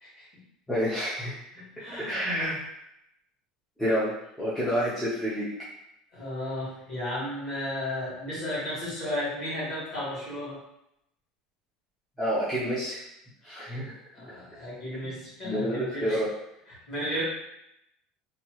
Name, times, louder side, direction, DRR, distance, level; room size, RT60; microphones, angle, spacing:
voice 1, 0.7-1.4 2.0-2.6 3.8-5.5 12.2-13.0 13.4-13.9 15.0-15.1 15.4-16.3, equal, 5° left, -11 dB, 0.6 m, -28 dB
voice 2, 1.5-2.3 6.1-10.6 14.1-16.2 16.7-17.2, left 1 dB, 35° left, -8 dB, 1.5 m, -34 dB
2.8 x 2.3 x 2.9 m, 0.83 s
cardioid pair, 175°, 0 cm